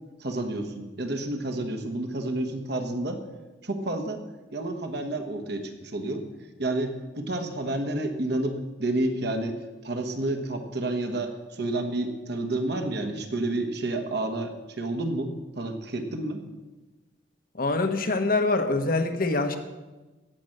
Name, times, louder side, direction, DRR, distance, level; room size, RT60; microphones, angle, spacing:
voice 1, 0.2-3.2 3.6-4.2 4.5-6.3 6.6-9.6 9.8-16.4, right 2 dB, 60° right, 5 dB, 1.4 m, -30 dB
voice 2, 17.5-19.6, left 3 dB, 50° left, 7 dB, 1.1 m, -24 dB
16.5 x 6.1 x 6.6 m, 1.2 s
head